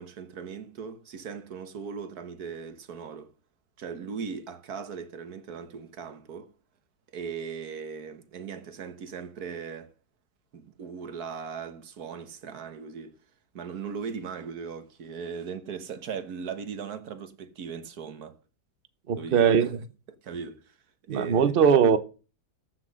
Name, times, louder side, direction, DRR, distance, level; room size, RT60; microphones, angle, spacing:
voice 1, 0.0-3.3 3.8-6.5 7.1-9.9 10.5-13.2 13.5-18.4 19.1-19.7 20.2-20.8 21.1-21.8, right 6 dB, 60° right, 1.6 m, -38 dB
voice 2, 19.1-19.7 21.1-22.0, right 7 dB, 45° right, 0.8 m, -20 dB
14.0 x 6.1 x 6.3 m
omnidirectional pair, 1.9 m